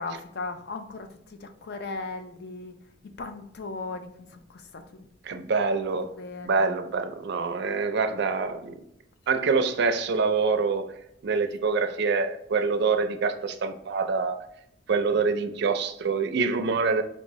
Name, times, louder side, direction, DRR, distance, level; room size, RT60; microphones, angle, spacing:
voice 1, 0.0-2.7 3.2-5.1 5.4-5.5 6.2-6.7, left 3 dB, 55° left, 0.5 m, -37 dB
voice 2, 5.2-6.1 6.4-8.8 9.3-10.9 11.2-14.4 14.9-17.0, right 4 dB, 60° right, 0.4 m, -25 dB
4.4 x 2.6 x 3.0 m
head